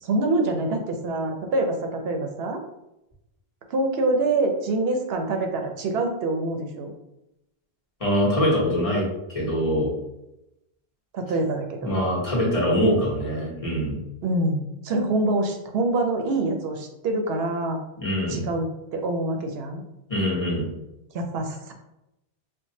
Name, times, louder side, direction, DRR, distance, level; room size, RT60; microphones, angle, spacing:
voice 1, 0.0-2.6 3.7-6.9 11.1-11.9 14.2-17.8 18.3-19.8 21.1-21.7, right 2 dB, 70° right, 3 dB, 0.8 m, -25 dB
voice 2, 8.0-9.0 9.3-9.9 11.8-14.0 18.0-18.4 20.1-20.7, equal, 35° left, -4 dB, 1.1 m, -23 dB
4.5 x 2.1 x 2.7 m, 0.89 s
omnidirectional pair, 1.1 m